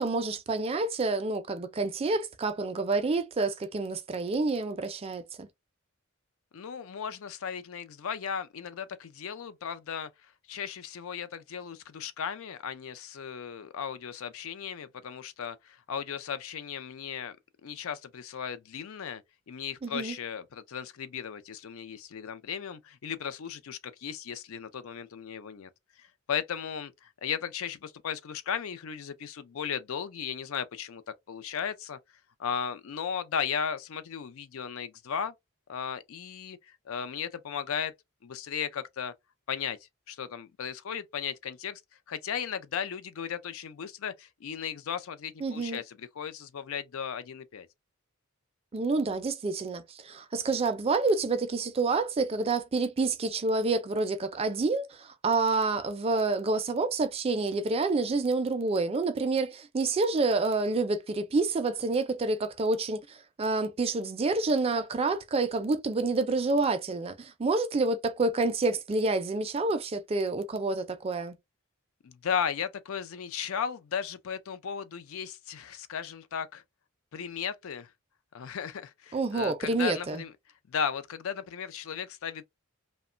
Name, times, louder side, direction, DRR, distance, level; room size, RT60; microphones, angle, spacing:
voice 1, 0.0-5.5 19.8-20.2 45.4-45.8 48.7-71.3 79.1-80.2, right 3 dB, 25° right, 0.3 m, -28 dB
voice 2, 6.5-10.1 10.5-17.4 17.6-19.2 19.5-25.7 26.0-31.0 31.3-32.0 32.4-35.3 35.7-37.9 38.2-39.1 39.5-39.8 40.1-41.8 42.1-47.7 72.0-76.6 77.1-77.9 78.3-80.3 80.7-82.4, left 7 dB, 70° left, 0.4 m, -36 dB
2.8 x 2.1 x 2.4 m
head